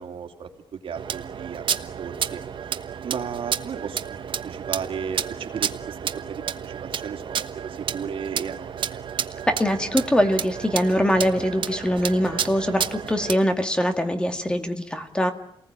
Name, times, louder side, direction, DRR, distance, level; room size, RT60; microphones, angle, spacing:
voice 1, 0.0-2.4 3.0-9.0, right 7 dB, 80° right, 5 dB, 2.8 m, -35 dB
sound 1, 0.9-13.4, right 8 dB, 65° right, 1.2 m, -31 dB
voice 2, 9.5-15.3, equal, 10° left, 6 dB, 2.1 m, -23 dB
29.0 x 19.5 x 9.1 m, 0.74 s
wide cardioid pair, 160°, 9 cm